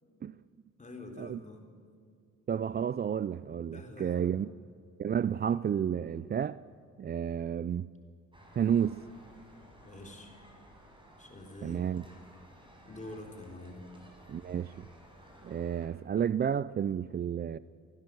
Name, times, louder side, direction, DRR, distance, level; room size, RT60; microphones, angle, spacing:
voice 1, 0.8-1.6 3.7-4.3 9.8-10.3 11.2-11.8 12.8-13.8, left 1 dB, 25° left, 4.2 m, -46 dB
voice 2, 2.5-4.5 5.0-6.6 7.0-7.9 8.5-9.0 11.6-12.0 14.3-14.9 15.4-17.6, right 8 dB, 35° right, 0.4 m, -31 dB
sound 1, 8.3-15.9, equal, 15° right, 5.6 m, -56 dB
23.5 x 17.0 x 7.9 m
cardioid pair, 90°, 30 cm